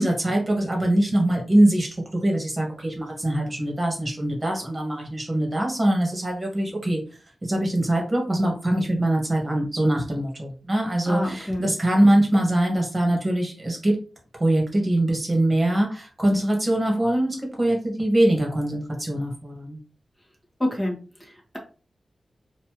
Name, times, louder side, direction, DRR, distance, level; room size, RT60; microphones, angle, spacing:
voice 1, 0.0-1.9 2.2-7.0 7.4-14.0 14.4-19.8, right 1 dB, 30° right, 0 dB, 1.7 m, -23 dB
voice 2, 11.1-11.7 20.6-21.6, left 1 dB, 10° left, -2 dB, 1.7 m, -28 dB
4.3 x 2.7 x 3.0 m, 0.36 s
wide cardioid pair, 75°, 0 cm